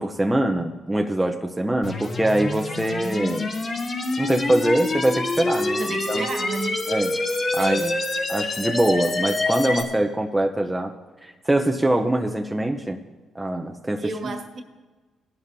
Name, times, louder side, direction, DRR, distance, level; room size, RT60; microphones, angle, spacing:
voice 1, 0.0-3.5 4.2-6.3 6.9-7.1 7.5-7.8 8.3-10.9 11.2-13.0 13.3-14.3, right 1 dB, 10° right, 3 dB, 0.7 m, -23 dB
sound 1, 1.8-9.8, left 2 dB, 40° left, 2.3 m, -26 dB
voice 2, 5.8-6.9 7.6-8.0 14.0-14.6, right 3 dB, 50° right, 4 dB, 1.6 m, -32 dB
20.0 x 11.5 x 2.7 m, 1.3 s
cardioid pair, 90°, 0 cm